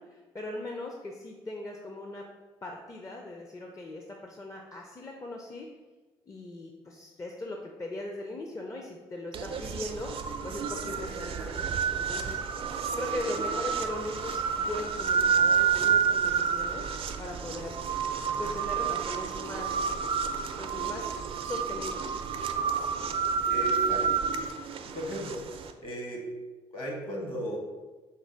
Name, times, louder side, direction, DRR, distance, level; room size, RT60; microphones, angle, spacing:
voice 1, 0.0-2.3 2.6-5.7 6.3-16.9 17.2-17.8 18.4-19.9 20.6-21.1 21.4-22.2, left 2 dB, 25° left, 1 dB, 0.5 m, -39 dB
sound 1, 9.3-25.7, right 7 dB, 50° right, 0.4 m, -29 dB
voice 2, 23.4-24.1 24.8-25.4 25.8-26.3 26.7-27.6, right 1 dB, 45° left, 0 dB, 1.3 m, -35 dB
4.5 x 2.1 x 4.4 m, 1.3 s
hypercardioid pair, 55°, 12 cm